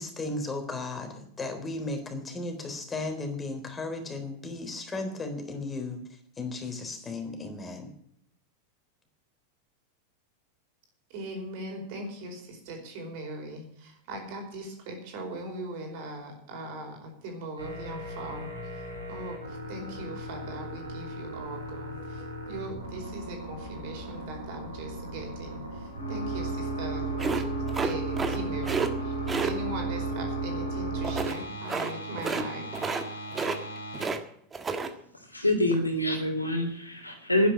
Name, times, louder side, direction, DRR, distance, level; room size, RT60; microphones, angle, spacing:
voice 1, 0.0-7.9, left 2 dB, 15° left, 5 dB, 3.7 m, -35 dB
voice 2, 11.1-32.7, right 1 dB, 45° right, 3 dB, 4.8 m, -40 dB
sound 1, 17.6-34.1, right 2 dB, 85° right, 4.6 m, -35 dB
sound 2, 27.2-28.4 28.6-28.9 29.3-29.5 31.0-31.4 31.7-31.9 32.2-32.5 32.7-33.1 33.3-34.2 34.5-34.9, right 4 dB, 15° right, 1.5 m, -30 dB
voice 3, 35.3-37.5, left 1 dB, 85° left, 3 dB, 3.4 m, -26 dB
11.5 x 10.5 x 8.5 m, 0.67 s
figure-of-eight pair, 90°, 0 cm